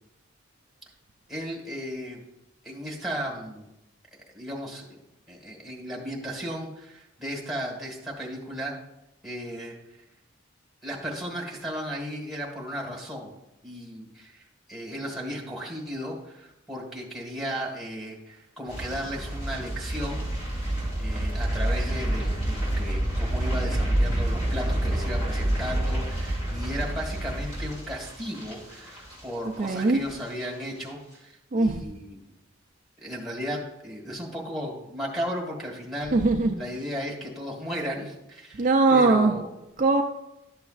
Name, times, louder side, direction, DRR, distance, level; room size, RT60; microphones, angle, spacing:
voice 1, 1.3-2.2 2.6-3.7 4.1-8.7 9.2-9.7 10.8-13.4 13.6-20.3 21.0-32.2 33.0-36.2 36.6-39.5, equal, ahead, -2 dB, 1.6 m, -35 dB
sound 1, 18.7-29.8 30.1-30.4 30.8-30.9, right 1 dB, 35° left, 3.4 m, -28 dB
voice 2, 29.6-30.0 31.5-31.8 36.1-36.6 38.5-39.3 39.8-40.0, right 3 dB, 40° right, 2 dB, 0.5 m, -21 dB
12.0 x 6.9 x 2.4 m, 0.89 s
head